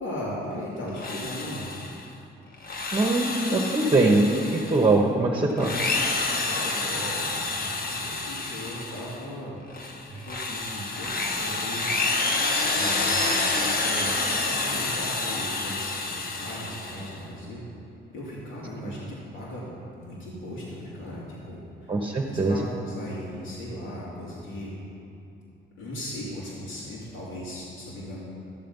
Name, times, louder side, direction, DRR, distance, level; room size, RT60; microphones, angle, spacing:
voice 1, 0.0-1.7 6.4-9.6 10.1-11.9 12.7-17.6 18.1-19.7 20.0-24.7 25.8-28.2, equal, 75° left, -6 dB, 2.8 m, -37 dB
Drill, 0.9-2.0 2.5-4.9 5.5-9.2 9.7-17.2, left 3 dB, 50° left, 1.3 m, -28 dB
voice 2, 2.9-5.7 21.9-22.7, right 2 dB, 25° right, -2 dB, 1.2 m, -22 dB
14.0 x 7.6 x 5.5 m, 2.8 s
cardioid pair, 90°, 20 cm